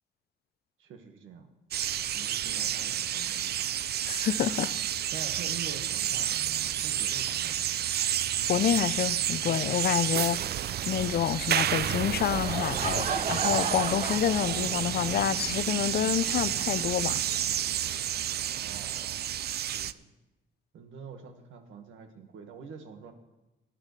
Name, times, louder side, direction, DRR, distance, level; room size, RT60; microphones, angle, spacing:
voice 1, 0.8-1.5 2.1-3.6 5.1-7.9 18.4-20.1 20.7-23.1, right 6 dB, 80° right, 1.7 m, -46 dB
sound 1, 1.7-19.9, right 11 dB, 55° right, 0.5 m, -30 dB
voice 2, 4.1-4.7 8.5-10.4 10.9-17.2, left 10 dB, 50° left, 0.5 m, -28 dB
Laughter / Crowd, 12.3-15.1, right 5 dB, 35° right, 0.8 m, -33 dB
18.0 x 11.0 x 3.3 m
cardioid pair, 90°, 20 cm